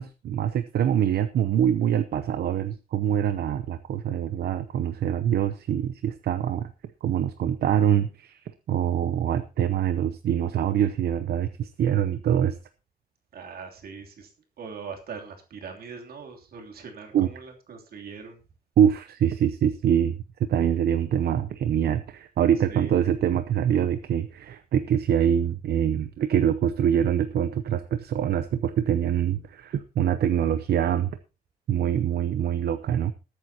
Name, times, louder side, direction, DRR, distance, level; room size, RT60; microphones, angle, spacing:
voice 1, 0.0-6.7 7.0-8.4 8.7-12.6 17.1-17.3 18.8-31.1 31.7-33.1, right 9 dB, 90° right, 11 dB, 0.8 m, -24 dB
voice 2, 13.3-14.3 14.6-18.4 22.7-22.9, right 5 dB, 75° right, 2 dB, 3.0 m, -41 dB
20.0 x 8.9 x 2.9 m, 0.31 s
wide cardioid pair, 150°, 16 cm